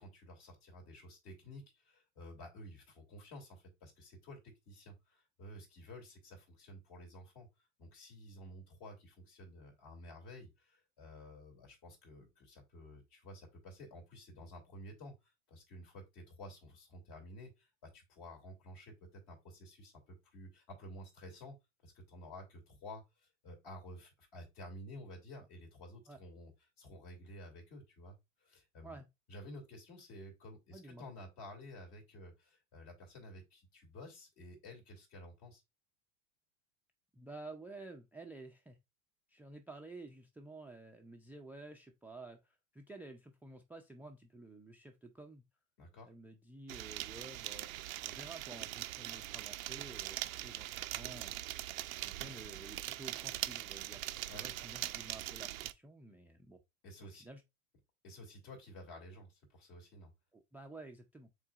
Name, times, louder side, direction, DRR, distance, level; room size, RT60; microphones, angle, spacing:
voice 1, 0.0-21.6 21.8-26.5 26.8-29.0 29.3-35.6 45.8-46.1 54.3-54.6 56.8-57.2 58.0-60.1, left 1 dB, 55° left, 2.6 m, -52 dB
voice 2, 30.7-31.0 37.1-38.8 39.3-45.4 46.0-51.3 52.0-54.0 54.3-56.6 57.0-57.4 60.3-61.3, right 2 dB, 5° right, 0.4 m, -52 dB
sound 1, 46.7-55.7, right 15 dB, 85° right, 0.5 m, -42 dB
5.8 x 3.8 x 2.3 m
hypercardioid pair, 95°, 40 cm